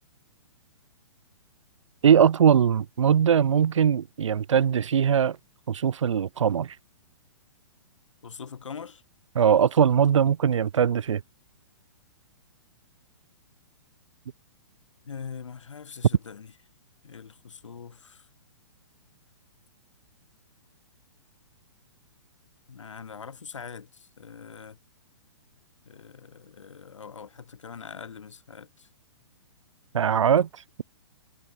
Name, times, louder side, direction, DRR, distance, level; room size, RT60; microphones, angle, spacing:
voice 1, 2.0-5.4 5.7-6.7 9.3-11.2 29.9-30.5, right 8 dB, 90° right, 0.6 m, -21 dB
voice 2, 8.2-9.0 15.1-16.5 17.0-18.3 22.7-24.8 25.9-28.9 30.2-30.3, left 6 dB, 90° left, 4.6 m, -42 dB
hypercardioid pair, 140°, 15 cm